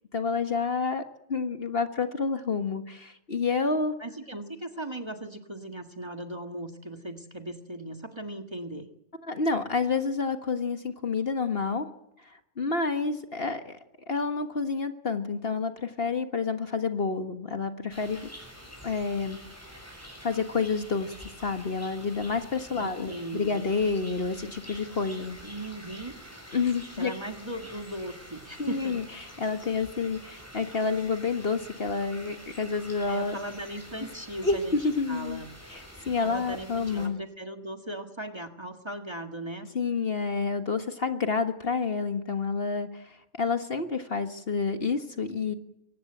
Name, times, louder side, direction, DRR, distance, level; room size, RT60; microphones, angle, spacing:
voice 1, 0.1-1.0 1.3-3.9 9.3-11.9 12.3-13.8 14.1-18.3 18.8-19.4 20.2-21.1 21.4-25.4 26.5-27.1 28.6-29.0 29.4-33.4 34.4-35.4 35.7-37.2 39.8-45.5, left 4 dB, 50° left, 7 dB, 1.6 m, -29 dB
voice 2, 4.0-8.9 22.8-23.7 25.4-26.2 27.0-29.0 33.1-34.8 35.1-35.5 36.1-39.7, right 1 dB, 20° right, 5 dB, 1.7 m, -38 dB
sound 1, 17.9-37.1, equal, 10° left, 6.1 m, -47 dB
23.5 x 18.5 x 8.0 m, 0.80 s
omnidirectional pair, 1.4 m